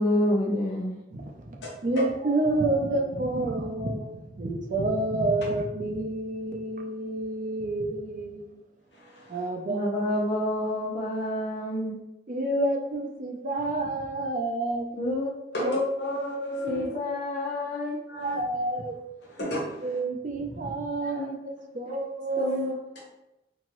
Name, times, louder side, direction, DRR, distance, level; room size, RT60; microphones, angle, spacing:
voice 1, 0.0-1.0 9.7-12.0 14.9-15.3 16.6-18.0 21.2-21.3 21.9-22.0 22.4-22.7, left 1 dB, 40° left, -6 dB, 0.6 m, -28 dB
voice 2, 1.1-8.6 9.3-9.9 12.3-14.9 15.6-15.7 16.6-16.9 18.1-19.0 19.8-22.5, right 2 dB, 45° right, 1 dB, 0.5 m, -29 dB
voice 3, 8.9-9.4 15.5-16.9 18.1-18.4 19.4-20.0, left 1 dB, 75° left, -3 dB, 0.9 m, -31 dB
2.9 x 2.6 x 2.9 m, 0.93 s
head